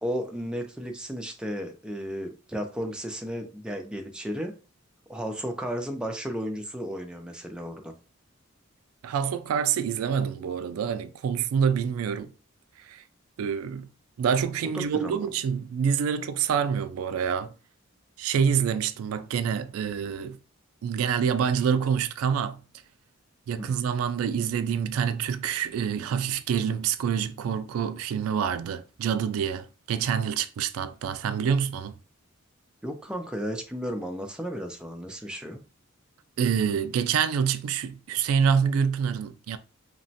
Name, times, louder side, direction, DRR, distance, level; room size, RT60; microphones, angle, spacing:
voice 1, 0.0-4.5 5.1-7.9 14.6-15.3 23.6-23.7 32.8-35.6, equal, 5° right, 0.4 m, -34 dB
voice 2, 9.0-12.3 12.8-13.0 13.4-13.9 14.2-17.5 18.2-20.4 20.8-22.6 23.5-31.9 36.4-39.6, right 7 dB, 90° right, 0.3 m, -26 dB
2.9 x 2.1 x 2.7 m
head